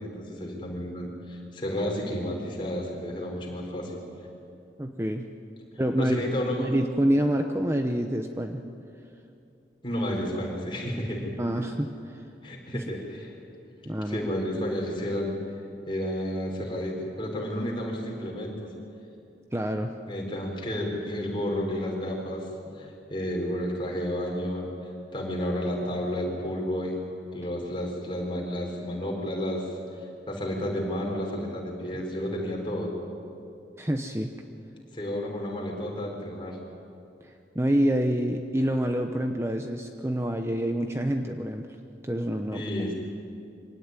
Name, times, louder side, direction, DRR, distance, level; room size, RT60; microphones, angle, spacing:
voice 1, 0.0-4.0 6.0-6.7 9.8-11.3 12.4-13.3 14.1-15.4 15.9-18.7 20.1-24.7 25.1-27.0 27.3-29.7 30.3-32.9 34.9-36.6 42.5-42.9, equal, 30° left, -1 dB, 4.8 m, -31 dB
voice 2, 4.8-5.3 5.8-6.3 6.6-8.6 11.4-12.3 12.7-12.8 13.8-14.3 19.5-19.9 33.8-34.3 37.2-41.7 42.0-42.9, equal, 15° right, 5 dB, 0.8 m, -27 dB
24.5 x 17.5 x 9.7 m, 2.6 s
head